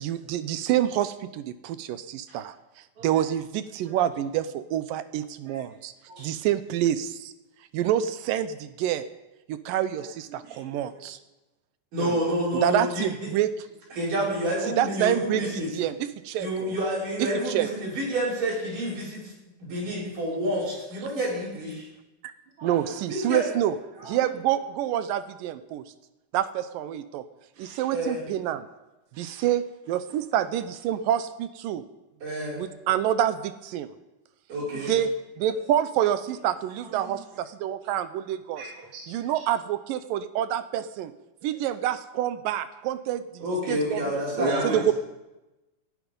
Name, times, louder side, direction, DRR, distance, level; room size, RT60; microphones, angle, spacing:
voice 1, 0.0-2.6 3.0-5.9 6.2-7.3 7.7-9.1 9.5-11.2 12.5-13.5 14.8-16.7 17.2-17.7 22.6-23.8 24.0-25.8 26.3-27.2 27.6-28.7 29.2-31.8 32.6-33.9 34.9-38.6 39.1-41.1 41.4-44.2 44.6-44.9, right 11 dB, 80° right, 12 dB, 2.5 m, -27 dB
voice 2, 3.0-3.3 3.9-4.0 5.5-5.6 6.1-6.4 10.4-10.6 10.9-11.1 12.0-12.2 15.4-15.5 22.6-22.9 24.0-24.3 27.5-27.9 29.1-29.4 34.6-35.0 35.5-35.6 36.8-37.2 38.5-39.3 41.4-41.5 44.4-44.8, right 2 dB, 45° right, -2 dB, 2.5 m, -36 dB
voice 3, 11.9-13.3 13.9-15.7 16.4-19.3 19.6-21.9 23.1-23.4 27.9-28.2 32.2-32.6 34.5-34.9 43.4-44.8, equal, 65° right, -7 dB, 7.1 m, -29 dB
19.5 x 11.0 x 5.4 m, 1.0 s
omnidirectional pair, 4.0 m